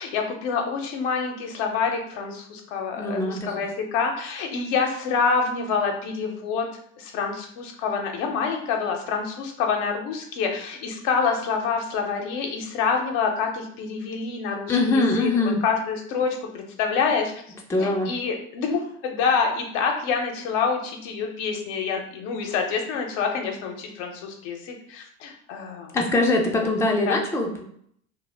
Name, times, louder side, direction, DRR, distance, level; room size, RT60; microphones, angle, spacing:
voice 1, 0.0-6.7 7.0-17.3 17.8-25.9 26.6-26.7 27.0-27.2, left 5 dB, 75° left, 2 dB, 0.7 m, -27 dB
voice 2, 3.0-3.6 14.7-15.6 17.7-18.1 25.9-27.6, left 2 dB, 5° left, 1 dB, 0.4 m, -22 dB
2.1 x 2.0 x 3.2 m, 0.67 s
hypercardioid pair, 80°, 37 cm